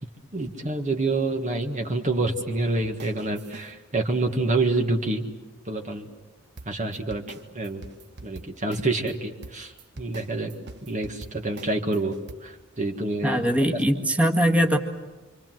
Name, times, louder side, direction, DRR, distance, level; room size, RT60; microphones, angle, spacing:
voice 1, 0.3-5.3 5.7-6.1 6.6-7.2 7.5-7.8 8.2-10.5 10.9-12.2 12.4-13.4, right 2 dB, 35° right, 3 dB, 1.7 m, -27 dB
sound 1, 3.0-3.7 6.6-9.1 9.4-12.3, right 2 dB, 50° right, 1.2 m, -43 dB
voice 2, 13.2-14.8, equal, 5° right, 2 dB, 1.8 m, -21 dB
27.5 x 26.0 x 7.7 m, 1.2 s
head